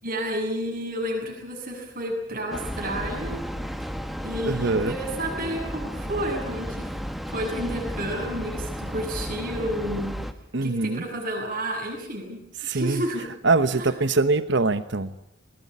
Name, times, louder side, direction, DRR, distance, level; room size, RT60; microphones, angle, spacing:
voice 1, 0.0-3.4 4.2-6.9 7.3-10.2 10.6-13.3 13.7-13.9, right 1 dB, 45° right, 0 dB, 7.5 m, -31 dB
Train, 2.5-10.3, equal, ahead, 1.3 m, -33 dB
voice 2, 4.4-5.0 10.5-11.0 12.6-13.0 13.4-15.1, right 3 dB, 60° right, 12 dB, 1.0 m, -23 dB
20.5 x 20.5 x 10.0 m, 0.78 s
head